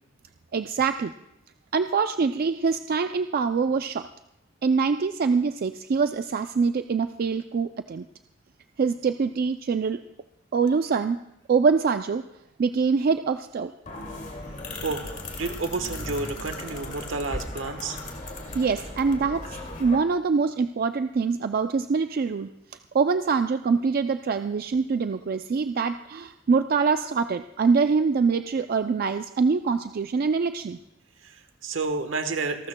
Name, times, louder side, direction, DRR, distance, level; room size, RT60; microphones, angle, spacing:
voice 1, 0.5-1.1 1.7-4.1 4.6-8.1 8.8-10.0 10.5-11.2 11.5-12.2 12.6-13.7 18.5-22.5 22.9-30.8, right 5 dB, 50° right, 9 dB, 0.4 m, -24 dB
sound 1, 13.9-20.0, left 2 dB, 45° left, 2.3 m, -37 dB
voice 2, 15.3-18.0 31.2-32.7, right 3 dB, 80° right, 8 dB, 1.2 m, -30 dB
27.5 x 12.5 x 2.2 m, 0.86 s
head